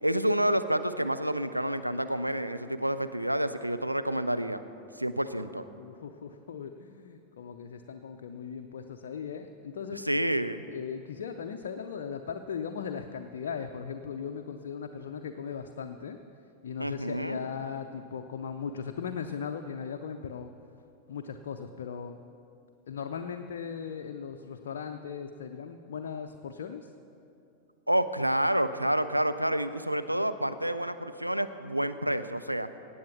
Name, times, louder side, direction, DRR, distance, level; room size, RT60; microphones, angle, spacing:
voice 1, 0.0-4.6 5.0-5.6 9.9-10.6 16.8-17.4 27.9-32.7, right 1 dB, 90° right, 10 dB, 0.5 m, -29 dB
voice 2, 5.4-10.1 10.7-16.2 16.6-20.5 21.1-22.2 22.9-26.9, left 6 dB, 60° left, 5 dB, 0.6 m, -38 dB
18.0 x 7.9 x 5.9 m, 2.7 s
figure-of-eight pair, 90°, 0 cm